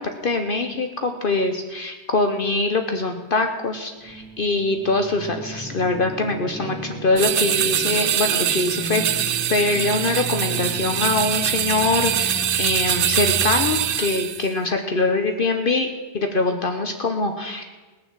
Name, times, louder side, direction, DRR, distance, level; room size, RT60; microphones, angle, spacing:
voice 1, 0.0-15.9 16.1-17.6, left 3 dB, 55° left, 6 dB, 1.0 m, -23 dB
sound 1, 4.0-14.0, right 3 dB, 5° right, 2.4 m, -34 dB
sound 2, 7.2-14.5, right 10 dB, 60° right, 0.7 m, -23 dB
18.5 x 7.2 x 7.3 m, 1.3 s
omnidirectional pair, 1.2 m